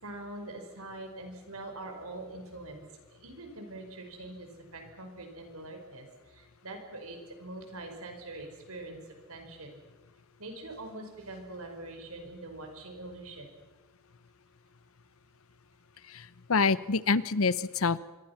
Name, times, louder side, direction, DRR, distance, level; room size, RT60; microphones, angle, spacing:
voice 1, 0.0-2.8 3.2-9.0 9.3-9.8 10.4-13.6, right 2 dB, 80° right, 4 dB, 5.3 m, -43 dB
voice 2, 16.1-18.0, left 4 dB, 70° left, 17 dB, 0.8 m, -27 dB
26.5 x 23.0 x 5.9 m, 1.2 s
head